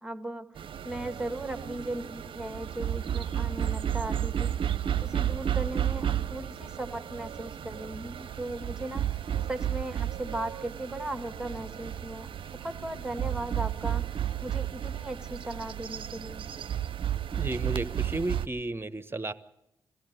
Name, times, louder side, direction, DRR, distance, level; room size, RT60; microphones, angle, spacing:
voice 1, 0.0-4.5 5.0-9.2 9.5-12.3 12.6-14.0 14.4-16.4, right 1 dB, 5° right, 9 dB, 1.8 m, -37 dB
sound 1, 0.6-18.5, right 10 dB, 55° right, 0.7 m, -32 dB
voice 2, 17.4-19.3, right 2 dB, 20° right, 13 dB, 1.1 m, -33 dB
22.0 x 15.0 x 9.5 m, 0.89 s
hypercardioid pair, 40°, 10 cm